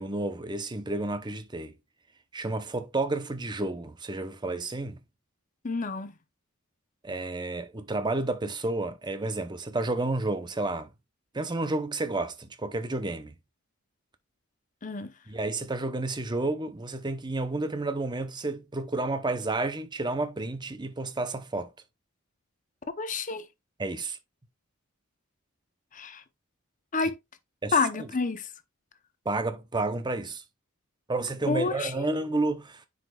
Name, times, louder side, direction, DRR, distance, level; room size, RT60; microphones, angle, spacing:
voice 1, 0.0-1.8 2.3-5.0 7.0-10.9 11.3-13.3 15.3-21.7 23.8-24.2 27.6-28.1 29.2-30.4 31.1-32.9, right 2 dB, 20° right, 0.7 m, -31 dB
voice 2, 5.6-6.1 14.8-15.1 23.0-23.4 25.9-26.2 26.9-27.1 27.7-28.5 31.5-32.0, left 4 dB, 35° left, 0.7 m, -28 dB
9.7 x 5.0 x 2.3 m
head